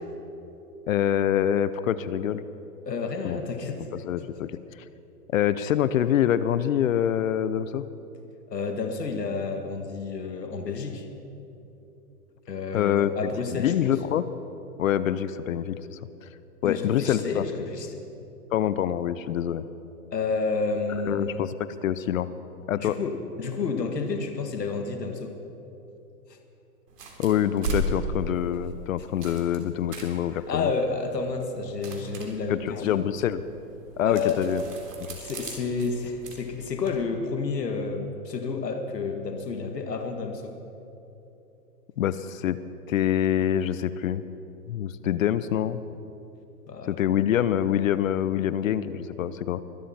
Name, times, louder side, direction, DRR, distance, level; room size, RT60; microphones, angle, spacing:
voice 1, 0.9-2.4 3.2-3.4 4.0-4.5 5.3-7.8 12.7-14.3 14.8-16.3 16.6-17.4 18.5-19.6 21.0-22.3 22.7-23.0 27.2-30.7 32.5-33.4 34.0-34.6 35.0-35.1 42.0-42.6 42.9-44.2 44.7-45.8 46.9-49.6, left 10 dB, 55° left, 15 dB, 0.7 m, -25 dB
voice 2, 2.9-3.9 8.5-11.1 12.5-13.9 16.6-18.0 20.1-21.4 22.8-25.3 30.5-32.9 34.0-34.5 35.2-40.5 46.7-47.0, left 4 dB, 85° left, 4 dB, 2.0 m, -30 dB
sound 1, 26.9-37.0, right 1 dB, 75° right, 3.5 m, -37 dB
23.5 x 12.5 x 4.3 m, 2.9 s
hypercardioid pair, 130°, 48 cm